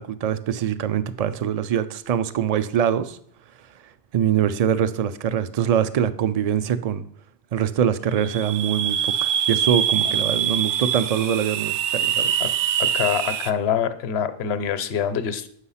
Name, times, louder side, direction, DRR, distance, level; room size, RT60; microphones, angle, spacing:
voice 1, 0.0-3.2 4.1-7.0 7.5-12.3, right 9 dB, 50° right, 13 dB, 0.4 m, -23 dB
sound 1, 8.1-13.5, right 8 dB, 85° right, 0.9 m, -24 dB
voice 2, 12.8-15.5, left 8 dB, 70° left, 12 dB, 0.9 m, -25 dB
8.1 x 6.2 x 5.6 m, 0.64 s
omnidirectional pair, 1.1 m